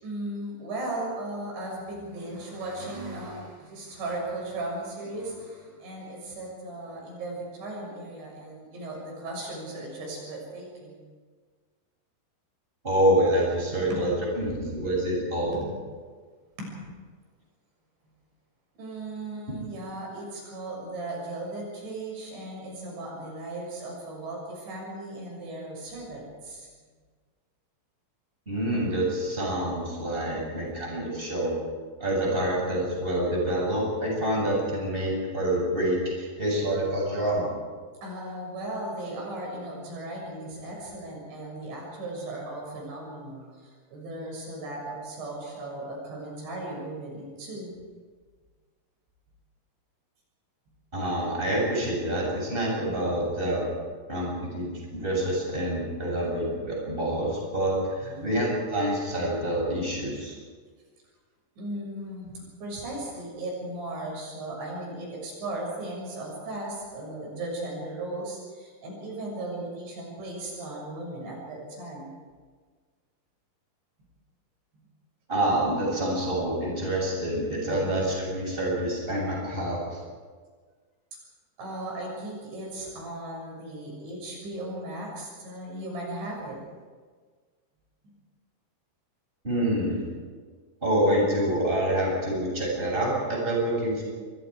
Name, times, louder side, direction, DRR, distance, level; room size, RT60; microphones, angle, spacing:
voice 1, 0.0-11.0 13.9-14.0 15.5-15.7 16.6-16.9 18.8-26.7 38.0-47.7 58.1-58.3 61.6-72.1 77.6-78.0 81.6-86.6, right 1 dB, 90° right, -2 dB, 9.1 m, -37 dB
voice 2, 12.8-15.6 28.5-31.6 32.0-37.5 50.9-53.7 54.1-60.3 75.3-80.0 89.4-90.0 90.8-94.0, right 1 dB, 10° right, -2 dB, 7.7 m, -27 dB
28.0 x 24.0 x 5.0 m, 1.5 s
omnidirectional pair, 5.0 m